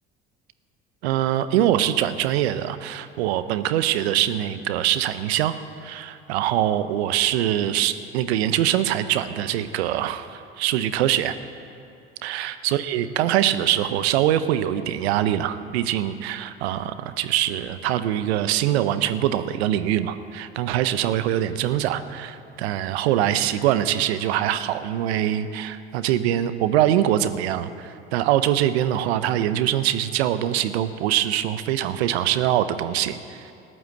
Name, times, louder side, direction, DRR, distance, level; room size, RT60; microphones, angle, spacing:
voice 1, 1.0-11.3 12.2-33.5, right 12 dB, 80° right, 12 dB, 0.8 m, -23 dB
13.5 x 11.0 x 7.8 m, 2.6 s
hypercardioid pair, 65°, 32 cm